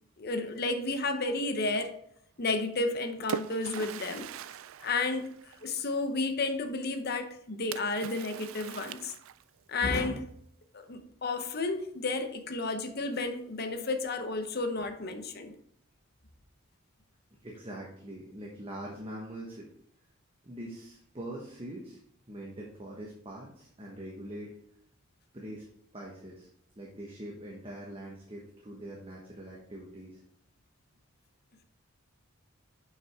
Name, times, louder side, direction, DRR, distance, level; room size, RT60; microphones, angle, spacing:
voice 1, 0.2-1.9 2.4-4.3 4.8-9.1 9.7-10.3 10.7-15.5, left 3 dB, 45° left, 7 dB, 0.8 m, -32 dB
Splash splatter, 2.7-5.9 7.7-9.6, right 9 dB, 65° right, 0.3 m, -41 dB
voice 2, 17.4-19.7 20.4-22.0 22.3-24.5 25.3-25.6 25.9-26.5 26.7-30.2, right 1 dB, 25° right, -3 dB, 1.2 m, -43 dB
7.1 x 5.8 x 3.6 m, 0.69 s
head